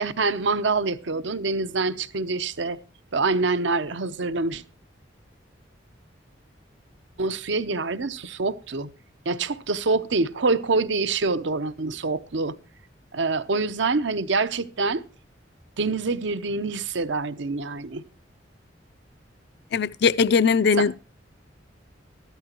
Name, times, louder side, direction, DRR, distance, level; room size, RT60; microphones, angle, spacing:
voice 1, 0.0-2.8 3.1-4.6 7.2-8.9 9.3-12.6 13.1-15.0 15.8-18.0 20.8-20.9, right 3 dB, 70° right, 0.8 m, -25 dB
voice 2, 19.7-21.0, left 5 dB, 60° left, 0.4 m, -20 dB
14.0 x 13.0 x 3.0 m
head